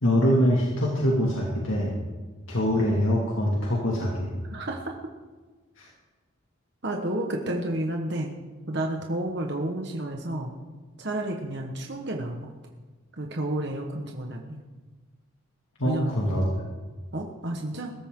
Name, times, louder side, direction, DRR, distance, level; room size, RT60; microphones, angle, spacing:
voice 1, 0.0-1.9 2.5-4.3 5.8-5.9 15.8-16.6, equal, 70° left, -3 dB, 2.5 m, -24 dB
voice 2, 4.5-4.9 6.8-8.3 8.7-10.5 11.0-12.5 13.2-14.6 15.8-16.1 17.1-17.9, right 1 dB, 50° right, 1 dB, 1.5 m, -31 dB
22.0 x 13.5 x 3.9 m, 1.3 s
head